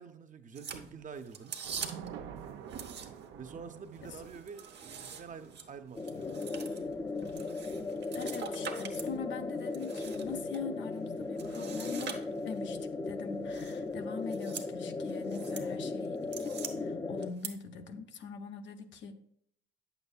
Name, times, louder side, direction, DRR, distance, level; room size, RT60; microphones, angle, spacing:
voice 1, 0.0-1.7 3.4-6.4, right 6 dB, 40° right, 0.6 m, -47 dB
sound 1, 0.5-2.2 2.7-3.4 3.8-9.1 9.5-10.6 11.4-12.7 13.5-13.8 14.2-14.7 15.1-15.7 16.0-16.7 17.2-17.5, right 7 dB, 60° right, 1.0 m, -44 dB
Thunder / Rain, 1.6-14.1, right 8 dB, 85° right, 0.7 m, -51 dB
sound 2, 5.9-17.3, left 3 dB, 15° left, 0.4 m, -37 dB
voice 2, 8.1-12.8 13.1-19.2, left 5 dB, 70° left, 0.7 m, -43 dB
8.6 x 6.8 x 2.3 m
cardioid pair, 90°, 20 cm